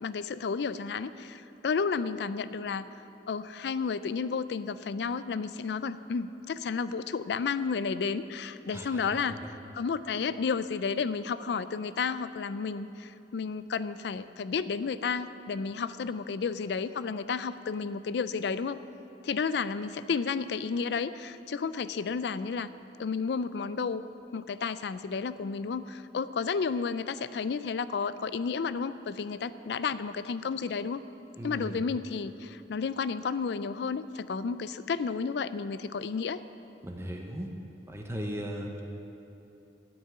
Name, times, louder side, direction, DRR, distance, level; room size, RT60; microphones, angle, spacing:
voice 1, 0.0-2.9 3.3-18.8 19.2-22.7 23.0-24.0 24.3-31.0 31.4-36.4, left 5 dB, 65° left, 14 dB, 0.4 m, -32 dB
voice 2, 8.7-9.5 31.4-31.8 36.8-37.5 37.9-38.8, equal, 15° right, 1 dB, 0.9 m, -38 dB
13.0 x 5.5 x 8.8 m, 2.9 s
head